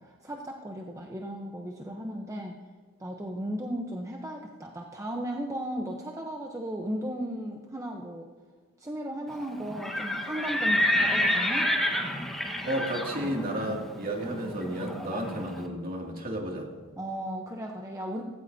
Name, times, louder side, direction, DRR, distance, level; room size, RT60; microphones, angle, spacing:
voice 1, 0.0-2.6 3.0-8.3 8.8-11.7 17.0-18.2, equal, 15° right, 1 dB, 0.8 m, -35 dB
Livestock farm animals working animals, 9.7-15.5, left 1 dB, ahead, 1.3 m, -29 dB
voice 2, 12.6-16.7, right 1 dB, 45° right, 0 dB, 2.4 m, -32 dB
17.0 x 17.0 x 2.8 m, 1.5 s
head